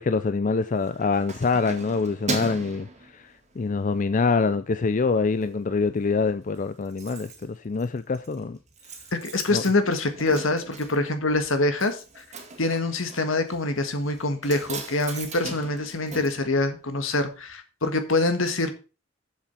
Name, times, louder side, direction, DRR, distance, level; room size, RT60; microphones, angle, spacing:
voice 1, 0.0-2.9 3.6-8.6 9.5-9.6, left 4 dB, 40° left, 0.4 m, -25 dB
Keys jangling, 0.7-3.8 4.2-4.4 4.8-5.5 5.8-5.9 6.1-6.2 6.4-17.2 17.5-17.6, right 3 dB, 35° right, 2.1 m, -39 dB
voice 2, 9.1-12.2 12.6-18.7, left 2 dB, 80° left, 1.7 m, -25 dB
7.4 x 7.2 x 5.7 m
head